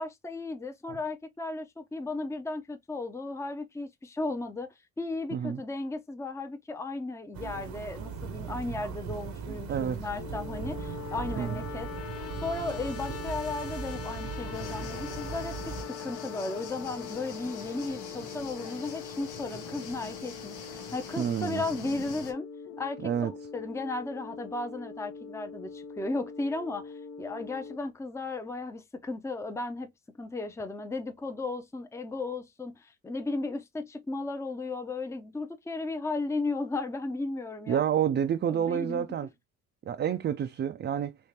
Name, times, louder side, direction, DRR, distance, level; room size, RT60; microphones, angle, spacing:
voice 1, 0.0-11.9 12.4-22.5 22.8-29.9 30.2-37.8 38.5-39.1, left 3 dB, 10° left, 0.6 m, -35 dB
voice 2, 5.3-5.6 9.7-10.1 11.4-11.6 21.2-21.6 23.0-23.3 37.7-39.3 39.9-41.2, right 9 dB, 35° right, 0.4 m, -29 dB
sound 1, 7.3-15.8, right 6 dB, 65° right, 0.9 m, -39 dB
sound 2, 10.1-27.8, left 6 dB, 50° left, 0.7 m, -42 dB
sound 3, 14.5-22.3, left 6 dB, 90° left, 0.9 m, -44 dB
3.5 x 3.1 x 2.8 m
supercardioid pair, 70°, 30 cm